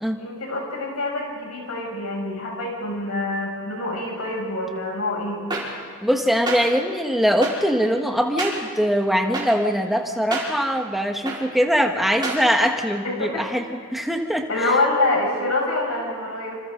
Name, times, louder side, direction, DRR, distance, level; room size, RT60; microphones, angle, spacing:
voice 1, 0.2-5.4 13.0-13.4 14.5-16.6, left 2 dB, 80° left, -1 dB, 7.3 m, -26 dB
sound 1, 5.5-5.6 6.5-6.6 7.4-7.5 8.4-8.5 9.3-9.4 10.3-10.4 11.3-11.4 12.2-12.4, right 3 dB, 20° right, 4.9 m, -26 dB
voice 2, 6.0-13.6 13.9-14.7, equal, ahead, 3 dB, 1.5 m, -22 dB
27.5 x 27.0 x 4.0 m, 2.3 s
head